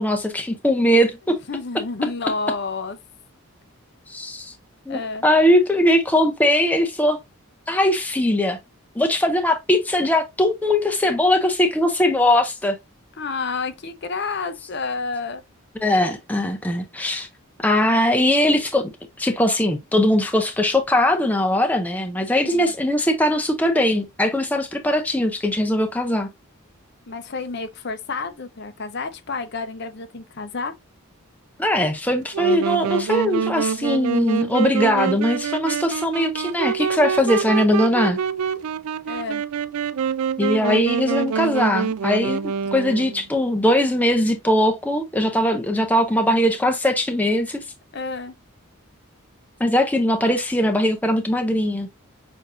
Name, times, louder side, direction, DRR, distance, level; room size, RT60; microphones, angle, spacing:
voice 1, 0.0-1.4 4.1-4.5 4.9-7.2 7.7-8.6 9.0-12.8 15.8-17.3 17.6-18.9 19.2-26.3 31.6-38.2 40.4-47.6 49.6-51.9, left 1 dB, 5° left, 0.5 m, -20 dB
voice 2, 1.5-3.0 4.9-5.3 13.2-15.4 22.4-22.7 27.1-30.7 39.0-39.4 47.9-48.3, left 4 dB, 50° left, 0.6 m, -30 dB
Wind instrument woodwind instrument, 32.3-43.2, right 7 dB, 85° right, 0.4 m, -26 dB
6.5 x 2.6 x 2.5 m
head